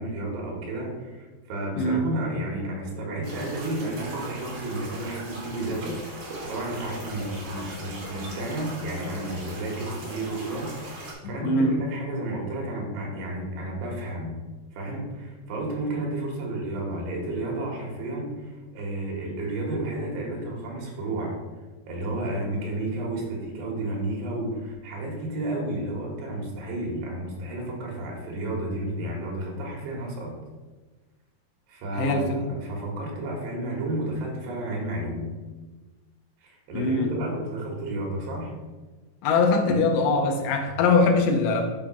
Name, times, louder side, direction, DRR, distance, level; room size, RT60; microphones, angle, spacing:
voice 1, 0.0-14.4 14.7-21.4 21.9-30.4 31.7-35.3 36.4-38.5, right 1 dB, 80° right, -1 dB, 3.4 m, -32 dB
voice 2, 1.8-2.1 11.4-11.8 31.9-32.5 36.7-37.2 39.2-41.7, left 3 dB, 90° left, 3 dB, 3.0 m, -22 dB
sound 1, 3.2-11.1, right 2 dB, 50° right, 2.2 m, -39 dB
11.5 x 5.0 x 2.3 m, 1.2 s
omnidirectional pair, 4.7 m